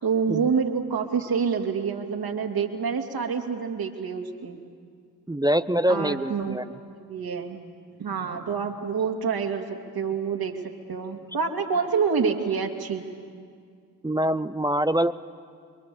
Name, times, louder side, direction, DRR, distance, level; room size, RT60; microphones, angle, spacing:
voice 1, 0.0-4.6 5.9-6.6 7.1-7.6 8.0-10.6 10.9-13.0, right 6 dB, 50° right, 3 dB, 2.9 m, -27 dB
voice 2, 5.3-6.6 14.0-15.1, right 1 dB, 10° right, 13 dB, 0.7 m, -24 dB
29.0 x 23.5 x 7.1 m, 2.1 s
hypercardioid pair, 45°, 46 cm